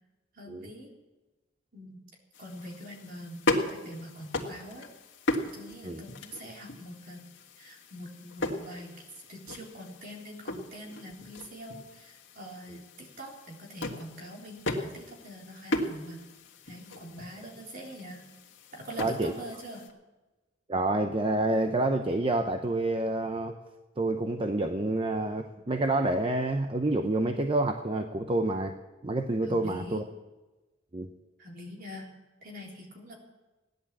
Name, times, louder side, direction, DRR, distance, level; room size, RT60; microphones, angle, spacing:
voice 1, 0.3-0.9 1.7-2.0 2.4-4.9 5.4-7.3 7.6-9.0 9.3-16.2 16.7-18.3 18.7-19.9 29.4-30.0 31.4-32.1 32.4-33.2, equal, 50° right, -1 dB, 3.6 m, -44 dB
sound 1, 2.3-19.9, left 2 dB, 90° left, 1.9 m, -37 dB
voice 2, 19.0-19.4 20.7-23.6 24.0-28.7 29.0-30.0 30.9-31.1, right 2 dB, 30° right, 6 dB, 0.8 m, -28 dB
16.5 x 10.5 x 7.4 m, 1.1 s
head